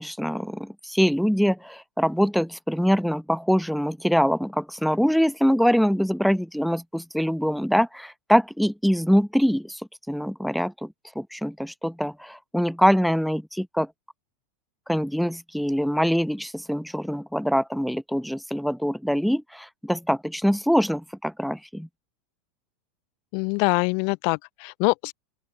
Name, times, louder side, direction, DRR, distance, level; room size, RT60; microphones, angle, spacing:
voice 1, 0.0-9.8 10.1-10.9 11.1-13.9 14.9-21.9, equal, ahead, 1.2 m, -24 dB
voice 2, 23.3-25.1, left 39 dB, 50° left, 0.6 m, -24 dB
open air
figure-of-eight pair, 85°, 0 cm